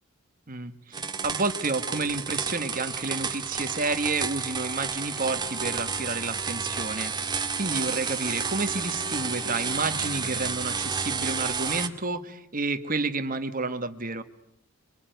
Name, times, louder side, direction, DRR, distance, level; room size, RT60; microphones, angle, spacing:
voice 1, 0.5-14.2, right 3 dB, 40° right, 10 dB, 1.7 m, -30 dB
sound 1, 0.9-11.9, right 5 dB, 20° right, 1.8 m, -31 dB
25.5 x 25.0 x 9.4 m, 0.76 s
head